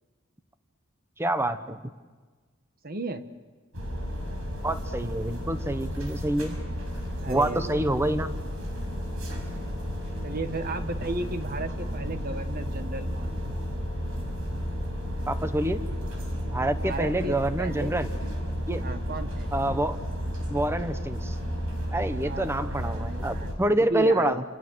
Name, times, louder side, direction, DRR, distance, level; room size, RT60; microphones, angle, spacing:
voice 1, 1.2-1.9 4.6-6.6 7.3-8.3 15.3-15.8 16.5-18.1 18.7-18.8 19.5-20.0 20.5-21.4 21.9-24.4, right 1 dB, 10° right, 10 dB, 1.1 m, -27 dB
voice 2, 2.8-3.2 7.2-7.9 9.3-13.5 16.8-18.0 18.8-19.5 22.2-24.4, right 2 dB, 45° right, 9 dB, 1.5 m, -35 dB
sound 1, 3.7-23.5, equal, 80° right, 5.9 m, -32 dB
29.5 x 27.5 x 6.4 m, 1.4 s
head